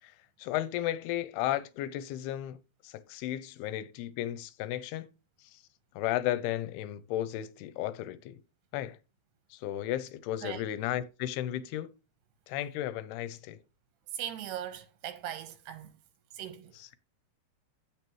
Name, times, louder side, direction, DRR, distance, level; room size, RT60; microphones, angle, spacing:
voice 1, 0.4-2.6 2.8-5.1 6.0-8.3 8.7-9.0 9.5-11.9 12.5-13.6 16.7-17.0, left 13 dB, 85° left, 2.7 m, -34 dB
voice 2, 14.2-15.9 16.4-16.7, right 10 dB, 85° right, 3.2 m, -39 dB
9.3 x 8.6 x 3.1 m
omnidirectional pair, 4.6 m